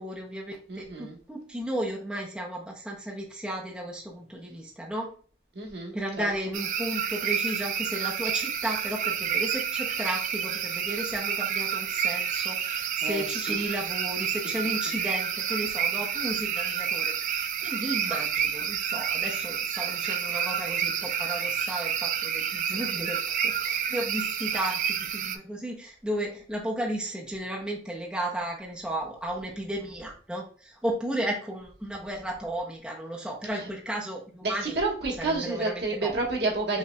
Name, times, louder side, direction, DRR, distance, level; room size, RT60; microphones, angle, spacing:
voice 1, 0.0-5.1 5.9-34.8 35.2-36.2 36.7-36.8, right 1 dB, 5° right, -2 dB, 0.6 m, -34 dB
voice 2, 0.7-1.2 5.5-6.3 13.0-13.7 33.5-33.7 34.4-36.8, right 3 dB, 70° right, -1 dB, 1.3 m, -30 dB
sound 1, 6.5-25.4, right 8 dB, 45° right, 0.3 m, -29 dB
5.6 x 3.1 x 2.2 m, 0.43 s
head